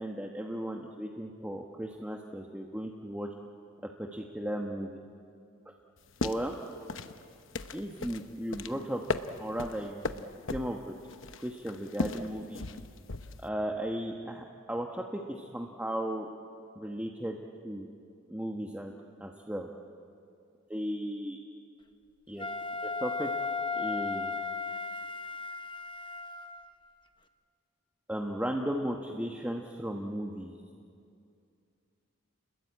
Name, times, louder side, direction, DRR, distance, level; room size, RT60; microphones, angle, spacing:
voice 1, 0.0-3.3 4.0-5.1 6.2-6.6 7.7-9.0 9.4-10.2 10.5-10.9 11.4-12.6 13.4-16.3 16.8-17.4 17.6-17.9 18.3-18.9 19.2-19.7 20.7-21.4 22.3-22.5 22.8-23.3 23.7-24.3 28.1-30.6, equal, 5° right, 1 dB, 1.1 m, -35 dB
sound 1, 6.0-13.5, left 3 dB, 65° left, 1.0 m, -38 dB
Wind instrument woodwind instrument, 22.4-26.7, left 4 dB, 25° left, 0.9 m, -35 dB
29.5 x 21.0 x 8.7 m, 2.5 s
head